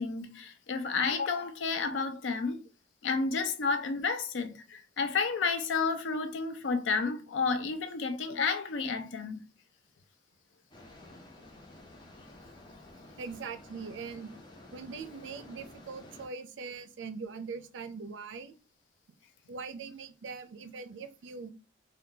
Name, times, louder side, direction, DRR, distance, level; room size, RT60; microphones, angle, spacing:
voice 1, 0.0-2.6 3.0-9.4, left 4 dB, 75° left, 0.4 m, -31 dB
sound 1, 10.7-16.3, left 1 dB, 25° left, 0.5 m, -52 dB
voice 2, 13.1-14.4 14.7-18.5 19.5-21.5, right 5 dB, 80° right, 0.4 m, -41 dB
3.6 x 2.3 x 2.7 m
head